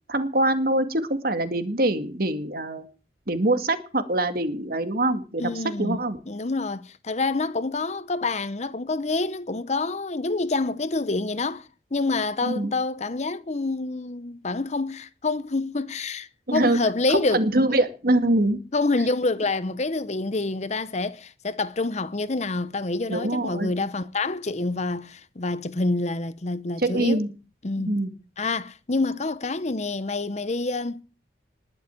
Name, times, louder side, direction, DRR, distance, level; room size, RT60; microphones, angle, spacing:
voice 1, 0.1-2.9 3.3-6.2 12.4-12.7 16.5-16.8 17.1-18.6 23.1-23.9 26.8-27.3 27.8-28.1, right 1 dB, 55° right, 2.2 m, -24 dB
voice 2, 5.4-6.0 6.3-17.4 18.7-27.2 27.6-28.0 28.4-31.0, left 3 dB, 40° left, 0.9 m, -27 dB
20.5 x 6.9 x 9.2 m
head